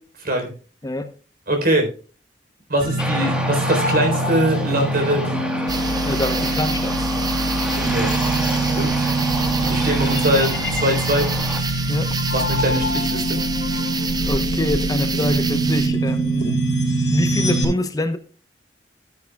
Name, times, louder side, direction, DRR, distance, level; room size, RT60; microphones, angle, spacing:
voice 1, 1.5-1.9 2.7-5.2 7.9-8.1 8.7-8.9 9.7-11.3 11.6-13.4 13.7-13.8, right 1 dB, 55° right, 3.9 m, -22 dB
sound 1, 2.8-17.6, right 2 dB, 65° left, 4.1 m, -23 dB
Aircraft, 3.0-11.6, equal, 5° right, 1.4 m, -30 dB
sound 2, 5.7-15.9, right 3 dB, 20° right, 0.7 m, -28 dB
voice 2, 6.0-6.9 11.9-12.1 14.2-16.6 16.8-18.2, left 1 dB, 20° left, 0.8 m, -25 dB
12.0 x 10.5 x 2.3 m
head